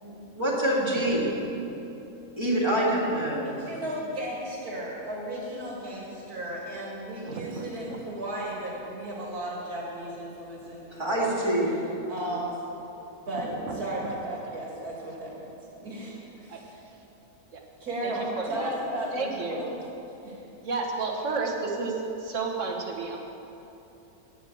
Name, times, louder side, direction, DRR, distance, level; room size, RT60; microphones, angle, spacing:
voice 1, 0.0-1.3 2.4-3.5 10.9-11.8, right 1 dB, 15° right, -4 dB, 2.0 m, -26 dB
voice 2, 3.2-11.4 12.1-12.7 13.2-15.5 15.8-16.8 17.8-19.7 20.2-20.3, right 1 dB, 75° right, -4 dB, 2.8 m, -35 dB
voice 3, 7.2-8.0 13.7-14.1 16.5-16.6 17.5-17.6 18.0-18.8 19.1-19.6 20.6-23.2, right 4 dB, 55° right, 1 dB, 1.6 m, -32 dB
9.1 x 8.5 x 7.7 m, 3.0 s
omnidirectional pair, 1.6 m